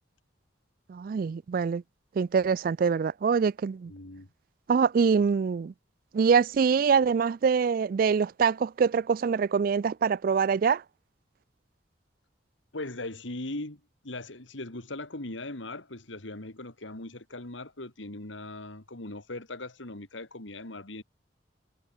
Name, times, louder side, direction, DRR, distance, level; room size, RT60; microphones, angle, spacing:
voice 1, 0.9-1.8 2.2-3.9 4.7-5.7 6.1-10.8, right 6 dB, 45° right, 0.3 m, -24 dB
voice 2, 3.9-4.3 12.7-21.0, left 2 dB, 80° left, 2.6 m, -39 dB
head